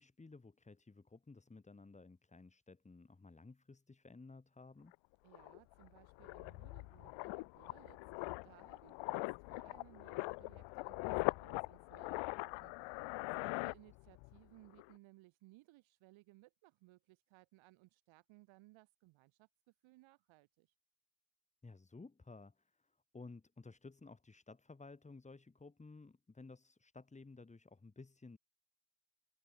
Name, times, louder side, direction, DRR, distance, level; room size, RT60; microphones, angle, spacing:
voice 1, 0.0-4.9 13.5-13.7 21.6-28.4, left 3 dB, 15° left, 2.3 m, -56 dB
sound 1, 4.9-5.0 5.3-14.4 14.6-14.9, left 25 dB, 65° left, 0.6 m, -42 dB
voice 2, 5.2-20.7, right 20 dB, 70° right, 2.7 m, -64 dB
supercardioid pair, 100°, 48 cm